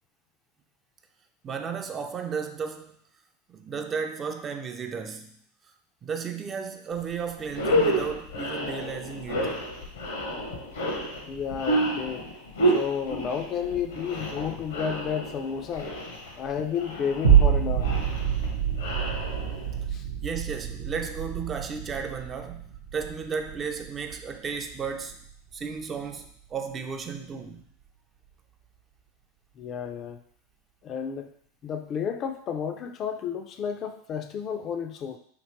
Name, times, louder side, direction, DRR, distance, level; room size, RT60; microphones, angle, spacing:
voice 1, 1.4-3.0 3.5-5.3 6.0-9.6 20.2-25.2 25.5-27.6, right 6 dB, 30° right, 5 dB, 0.4 m, -34 dB
sound 1, 7.0-7.1 7.5-19.8, right 1 dB, 75° left, 0.8 m, -30 dB
voice 2, 11.3-12.3 12.6-15.9 16.4-17.9 19.9-20.0 29.6-30.2 30.8-31.3 31.6-35.2, left 7 dB, 40° left, 7 dB, 0.4 m, -31 dB
sound 2, 17.2-25.8 26.3-26.4, right 9 dB, 75° right, 0.6 m, -26 dB
3.0 x 3.0 x 2.9 m, 0.63 s
hypercardioid pair, 90°, 0 cm